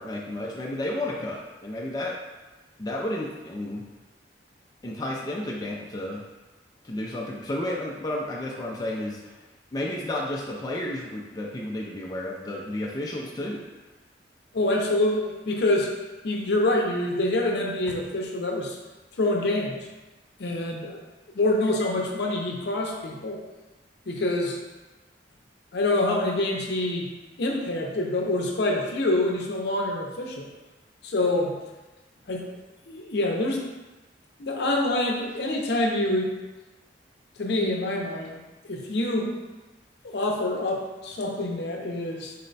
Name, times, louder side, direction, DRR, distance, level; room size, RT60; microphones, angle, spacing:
voice 1, 0.0-2.2 2.8-3.8 4.8-6.2 6.8-9.4 9.7-13.6, left 1 dB, 20° left, -3 dB, 0.4 m, -32 dB
voice 2, 14.5-15.9 16.2-18.8 19.2-19.8 20.4-21.0 21.3-23.4 24.1-24.6 25.7-27.1 27.4-30.5 31.0-31.6 32.3-32.5 32.9-33.6 34.4-36.3 37.4-38.4 38.7-39.3 40.0-42.3, left 2 dB, 65° left, 0 dB, 0.6 m, -26 dB
4.1 x 2.2 x 3.9 m, 1.1 s
head